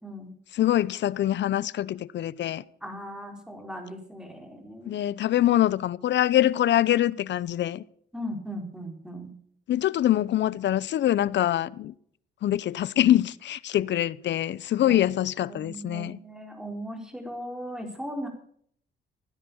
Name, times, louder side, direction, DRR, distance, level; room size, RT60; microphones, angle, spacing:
voice 1, 0.0-0.3 2.8-5.0 8.1-9.3 14.8-15.1 15.5-18.3, equal, 5° right, 4.4 m, -38 dB
voice 2, 0.5-2.6 4.8-7.8 9.7-11.9 12.4-16.2, left 12 dB, 65° left, 0.7 m, -24 dB
16.0 x 10.0 x 7.1 m
cardioid pair, 90°, 20 cm